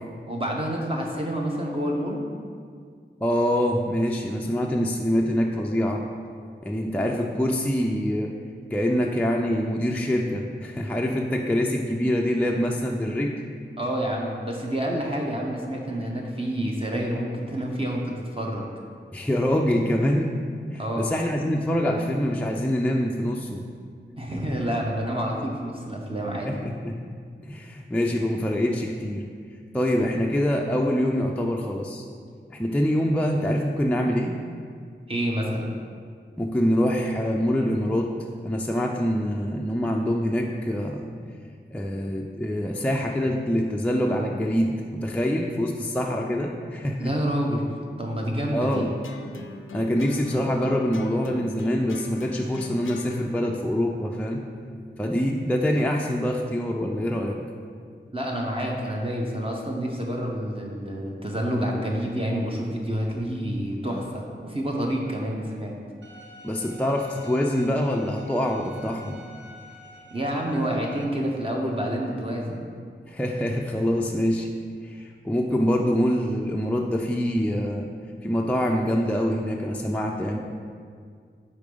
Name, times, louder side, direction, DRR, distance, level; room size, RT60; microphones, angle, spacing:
voice 1, 0.3-2.2 13.8-18.7 20.8-21.1 24.2-26.5 35.1-35.7 47.0-47.6 48.0-48.9 58.1-65.8 70.1-72.7, equal, 30° right, -2 dB, 0.8 m, -28 dB
voice 2, 3.2-6.0 6.6-8.3 8.7-13.3 19.1-20.3 20.7-23.6 26.5-27.0 27.4-29.2 29.7-32.0 32.5-34.4 36.4-38.1 38.4-41.1 41.7-47.1 48.5-48.9 49.7-54.4 55.0-57.4 66.4-69.2 73.1-74.5 74.8-77.9 78.2-80.4, equal, 5° left, 0 dB, 0.4 m, -25 dB
sound 1, 48.7-55.2, left 3 dB, 85° left, 0.4 m, -41 dB
Bowed string instrument, 66.0-71.0, left 1 dB, 65° right, 0.7 m, -47 dB
4.9 x 4.2 x 5.1 m, 2.1 s
wide cardioid pair, 65°, 20 cm